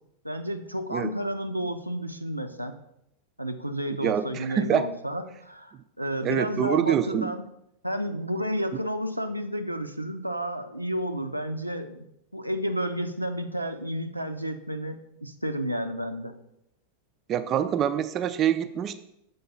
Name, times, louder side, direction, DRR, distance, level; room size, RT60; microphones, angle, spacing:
voice 1, 0.2-2.8 3.4-7.4 7.8-12.1 12.3-16.3, equal, 90° right, 6 dB, 0.5 m, -31 dB
voice 2, 4.0-4.8 6.2-7.3 17.3-19.0, right 9 dB, 30° right, 10 dB, 0.4 m, -25 dB
6.9 x 3.8 x 5.3 m, 0.79 s
figure-of-eight pair, 90°, 0 cm